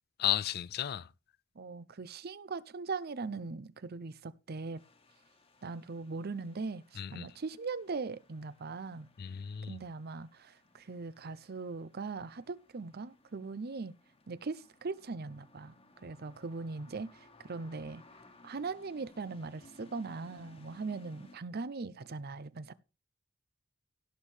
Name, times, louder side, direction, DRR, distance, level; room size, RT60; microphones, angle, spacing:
voice 1, 0.2-1.1 7.0-7.3 9.2-9.8, left 11 dB, 50° left, 0.4 m, -33 dB
voice 2, 1.6-4.8 5.6-9.1 9.7-14.0 14.3-15.7 16.0-18.0 18.4-22.7, right 4 dB, 55° right, 0.6 m, -40 dB
sound 1, 4.7-21.4, left 2 dB, 30° left, 1.5 m, -61 dB
17.0 x 6.4 x 3.3 m
head